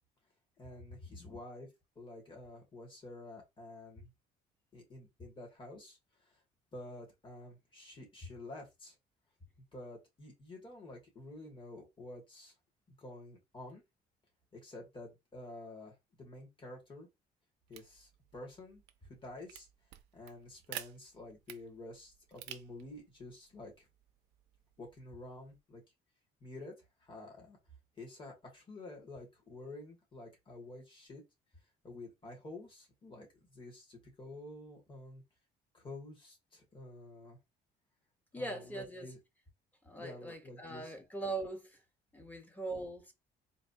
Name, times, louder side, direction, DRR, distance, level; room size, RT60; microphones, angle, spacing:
voice 1, 0.6-1.7 2.0-4.1 4.7-6.4 6.7-9.0 9.7-12.5 12.9-13.8 14.5-17.1 17.7-18.8 19.1-19.7 20.1-23.9 24.8-25.8 26.4-26.7 27.0-27.6 28.0-31.2 31.8-35.2 35.7-37.4 38.4-39.2 40.0-40.9, left 2 dB, 30° left, 2.3 m, -50 dB
sound 1, 17.7-25.6, right 13 dB, 90° right, 0.5 m, -53 dB
voice 2, 38.3-39.1 39.8-41.8 42.1-43.1, right 2 dB, 10° left, 1.2 m, -41 dB
3.9 x 2.8 x 2.8 m
cardioid pair, 110°, 17 cm